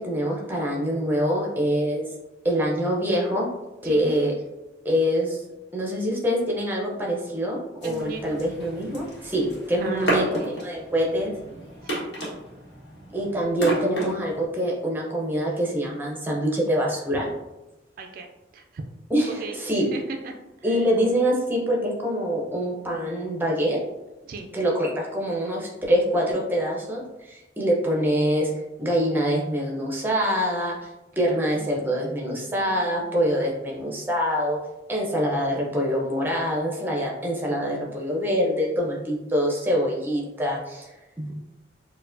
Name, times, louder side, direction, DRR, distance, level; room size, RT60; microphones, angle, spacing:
voice 1, 0.0-2.0 2.4-3.5 3.8-4.3 4.8-5.4 5.7-11.3 13.1-17.3 19.1-19.9 20.6-23.8 24.5-28.5 28.8-30.8 31.2-34.6 34.9-41.4, equal, 10° right, -2 dB, 0.6 m, -25 dB
sound 1, 7.8-14.4, right 1 dB, 65° left, 1.2 m, -32 dB
voice 2, 7.8-8.4 9.8-10.6 11.8-12.1 18.0-18.3 18.5-18.8 19.3-20.8 24.3-24.5, right 4 dB, 50° right, 4 dB, 0.3 m, -39 dB
4.5 x 2.1 x 2.5 m, 1.0 s
head